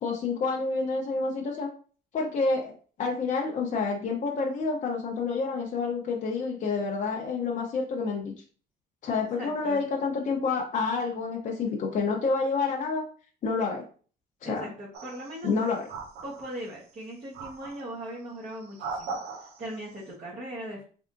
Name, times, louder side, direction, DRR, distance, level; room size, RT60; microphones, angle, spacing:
voice 1, 0.0-1.7 2.1-8.3 9.0-13.0 13.4-13.8 14.4-14.7 15.4-15.9, left 4 dB, 50° left, -1 dB, 0.8 m, -28 dB
voice 2, 9.4-9.8 14.4-15.6 16.2-20.8, right 1 dB, 45° right, -5 dB, 1.2 m, -39 dB
sound 1, 14.9-15.5 15.9-16.7 17.3-18.0 18.6-19.8, right 4 dB, 80° right, 0.8 m, -39 dB
3.6 x 3.3 x 2.6 m, 0.41 s
cardioid pair, 110°, 17 cm